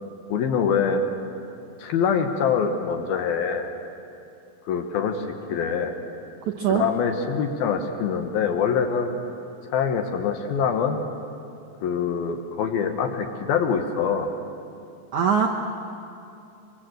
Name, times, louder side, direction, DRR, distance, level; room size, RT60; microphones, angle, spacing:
voice 1, 0.3-1.0 1.8-3.7 4.7-5.9 6.7-9.2 9.6-11.0 11.8-14.3, left 6 dB, 70° left, 5 dB, 2.8 m, -24 dB
voice 2, 6.5-6.9 15.1-15.5, right 7 dB, 70° right, 0 dB, 1.9 m, -21 dB
24.0 x 24.0 x 7.8 m, 2.6 s
omnidirectional pair, 5.0 m